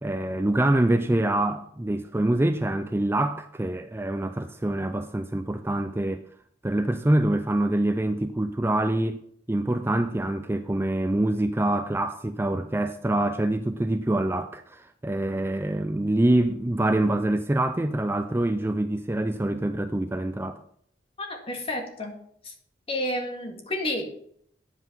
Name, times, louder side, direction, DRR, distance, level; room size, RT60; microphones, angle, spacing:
voice 1, 0.0-6.2 6.6-9.2 9.5-20.6, right 1 dB, 15° right, 0.4 m, -25 dB
voice 2, 21.2-22.2 22.4-22.5 22.9-24.1, left 1 dB, 35° left, 2.1 m, -30 dB
9.4 x 8.1 x 5.5 m
head